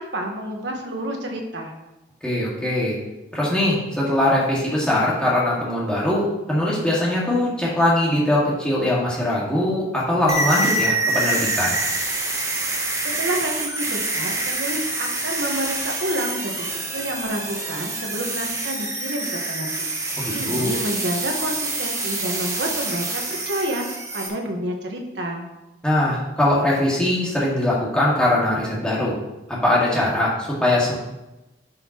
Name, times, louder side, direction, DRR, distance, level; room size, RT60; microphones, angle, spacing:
voice 1, 0.0-1.7 13.2-25.4, right 1 dB, 75° right, 1 dB, 1.4 m, -29 dB
voice 2, 2.2-3.0 3.3-11.8 20.2-20.8 25.8-29.2 29.5-30.9, left 1 dB, 5° left, -6 dB, 2.0 m, -21 dB
sound 1, 10.3-24.3, right 2 dB, 15° right, 0.9 m, -26 dB
10.5 x 5.6 x 3.0 m, 0.99 s
head